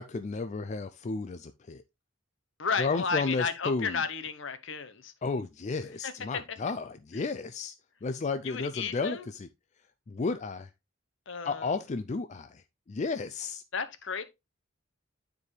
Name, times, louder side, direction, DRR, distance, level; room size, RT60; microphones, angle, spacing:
voice 1, 0.0-1.8 2.8-4.0 5.2-7.7 8.0-9.2 10.1-10.7 11.4-13.6, left 4 dB, 35° left, 0.4 m, -33 dB
voice 2, 2.6-5.1 6.0-6.1 6.5-6.6 7.1-7.2 8.4-9.3 11.3-11.7 13.7-14.2, left 5 dB, 65° left, 0.9 m, -33 dB
9.7 x 4.7 x 3.2 m
head